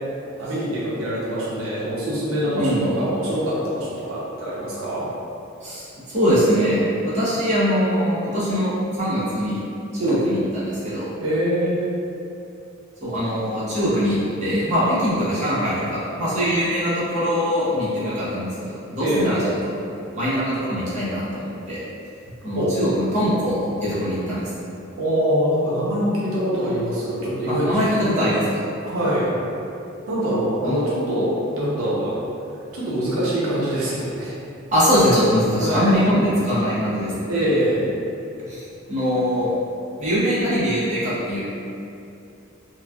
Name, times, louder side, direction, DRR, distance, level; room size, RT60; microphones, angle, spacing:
voice 1, 0.4-5.1 10.0-10.2 11.2-11.8 19.0-19.3 22.6-22.7 25.0-28.1 28.8-29.3 30.1-31.3 31.6-32.2 32.7-34.3 35.6-36.0 37.3-37.9, equal, 90° right, -7 dB, 0.6 m, -24 dB
voice 2, 2.5-2.9 5.6-9.6 9.9-11.1 13.0-19.7 20.1-21.8 22.4-24.5 27.5-28.4 30.6-31.1 34.7-37.3 38.5-39.5 40.0-41.4, equal, 35° right, -11 dB, 0.9 m, -22 dB
3.0 x 2.4 x 2.2 m, 2.7 s
head